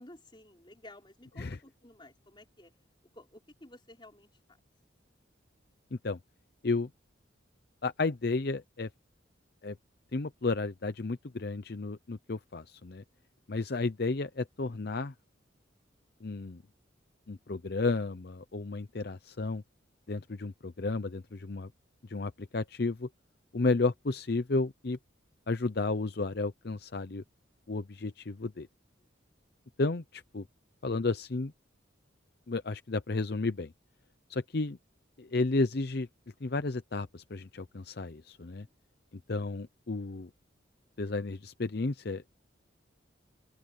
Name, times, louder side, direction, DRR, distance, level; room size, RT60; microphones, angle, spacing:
voice 1, 0.0-2.7 3.1-4.6 12.9-13.3 29.0-29.3 38.4-38.8, left 1 dB, 25° left, 4.5 m, -54 dB
voice 2, 7.8-8.9 9.6-9.8 10.1-13.0 13.5-15.1 16.2-16.6 17.3-19.6 20.1-21.7 22.0-23.1 23.5-25.0 25.5-27.2 27.7-28.7 29.8-30.4 30.8-31.5 32.5-33.7 34.3-34.8 35.2-36.1 36.4-38.7 39.3-40.3 41.0-42.2, left 3 dB, 55° left, 0.7 m, -32 dB
open air
head